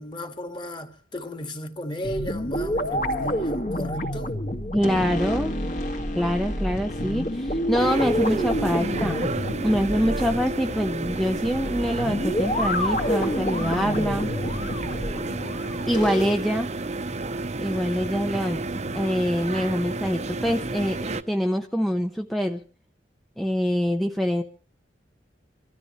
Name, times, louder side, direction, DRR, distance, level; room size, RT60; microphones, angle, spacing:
voice 1, 0.0-4.3, equal, 25° left, 2.1 m, -34 dB
sound 1, 2.0-16.4, equal, 45° left, 2.0 m, -28 dB
voice 2, 4.7-5.6 6.1-9.3 9.6-14.3 15.9-16.7 17.6-22.6 23.4-24.4, equal, ahead, 0.7 m, -25 dB
sound 2, 7.8-21.2, right 2 dB, 40° right, 0.9 m, -31 dB
26.5 x 13.0 x 3.2 m
head